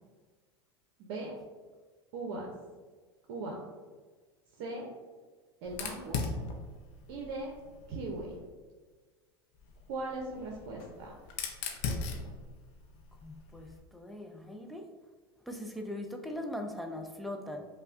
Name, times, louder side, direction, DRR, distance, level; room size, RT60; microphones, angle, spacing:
voice 1, 1.0-1.3 2.1-2.5 3.3-3.5 4.6-4.9 5.6-6.3 7.1-7.5 7.9-8.3 9.9-11.1, right 2 dB, 60° right, -2 dB, 0.6 m, -38 dB
Fire, 5.7-8.4 9.6-13.8, left 4 dB, 55° left, 0.6 m, -40 dB
voice 2, 13.2-14.9 15.5-17.7, left 1 dB, ahead, 3 dB, 0.5 m, -40 dB
5.3 x 2.2 x 2.5 m, 1.4 s
hypercardioid pair, 85°, 13 cm